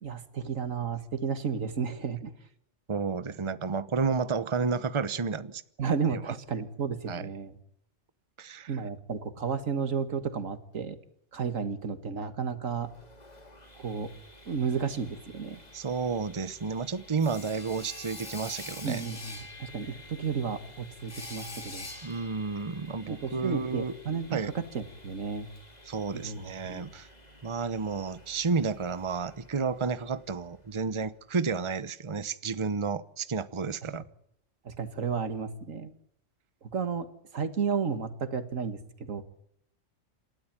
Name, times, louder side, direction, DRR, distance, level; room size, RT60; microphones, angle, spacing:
voice 1, 0.0-2.3 5.8-7.6 8.7-11.0 11.3-12.9 13.8-14.1 14.5-15.6 18.8-21.9 23.1-25.5 26.1-26.4 26.7-26.9 34.7-35.9 36.6-37.1 37.3-39.2, right 6 dB, 85° right, 11 dB, 2.1 m, -32 dB
voice 2, 2.9-5.6 6.1-6.3 7.1-7.3 8.4-8.7 15.7-19.0 22.0-23.9 24.3-24.5 25.9-27.1 27.4-34.0, right 4 dB, 25° right, 15 dB, 0.9 m, -31 dB
Sawing, 12.8-30.6, left 2 dB, 30° left, 3.0 m, -48 dB
28.0 x 13.0 x 8.9 m, 0.70 s
omnidirectional pair, 1.3 m